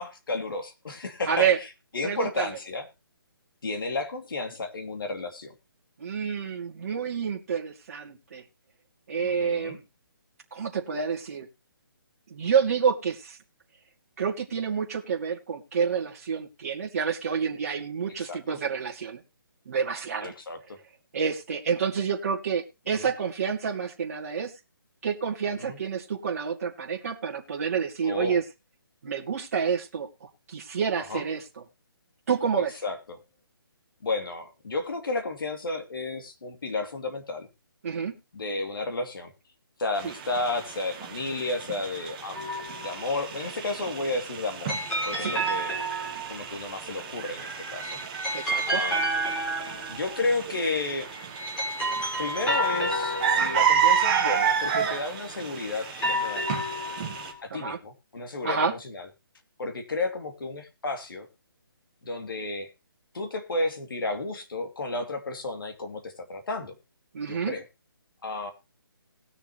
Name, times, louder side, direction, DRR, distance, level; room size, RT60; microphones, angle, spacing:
voice 1, 0.0-1.7 1.9-2.9 3.6-5.5 9.2-9.8 18.2-18.6 20.2-20.8 22.9-23.1 25.6-25.8 28.0-28.4 31.1-31.2 32.8-33.2 34.0-37.5 38.3-39.3 39.8-42.5 42.8-44.8 45.0-45.8 46.3-48.0 48.7-49.0 49.9-51.1 52.2-53.1 53.4-56.5 57.4-59.1 59.6-61.3 62.0-62.7 63.1-66.8 67.3-67.6 68.2-68.5, left 3 dB, 65° left, 5 dB, 2.7 m, -32 dB
voice 2, 1.3-1.6 2.0-2.5 6.0-8.4 9.1-9.8 10.5-11.5 12.3-13.4 14.2-19.2 19.7-20.3 21.1-24.5 25.0-28.4 29.0-31.4 32.3-32.8 37.8-38.2 40.0-40.1 45.2-45.4 48.3-48.8 57.5-57.8 58.4-58.7 67.1-67.5, right 6 dB, 40° right, -1 dB, 2.4 m, -28 dB
sound 1, 39.9-57.3, right 8 dB, 20° right, 1.4 m, -31 dB
sound 2, 42.3-43.1 44.7-46.6 47.6-50.4 51.1-55.2 55.8-57.4, right 1 dB, 10° left, 3.7 m, -31 dB
20.0 x 6.8 x 3.0 m, 0.27 s
hypercardioid pair, 175°, 12 cm